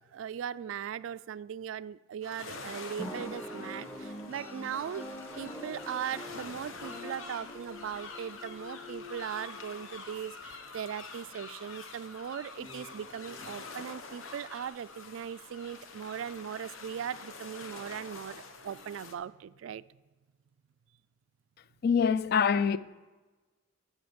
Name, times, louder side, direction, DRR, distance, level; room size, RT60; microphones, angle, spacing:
voice 1, 0.0-5.1 5.4-19.8, right 8 dB, 75° right, 0.3 m, -39 dB
sound 1, 2.2-19.1, left 4 dB, 85° left, 0.9 m, -46 dB
sound 2, 3.0-10.3, equal, 30° left, 2.0 m, -51 dB
sound 3, 3.0-10.5 12.6-14.0 14.4-14.5, left 1 dB, 10° left, 0.7 m, -46 dB
voice 2, 21.8-22.8, left 6 dB, 50° left, 0.3 m, -24 dB
14.0 x 6.3 x 5.2 m
head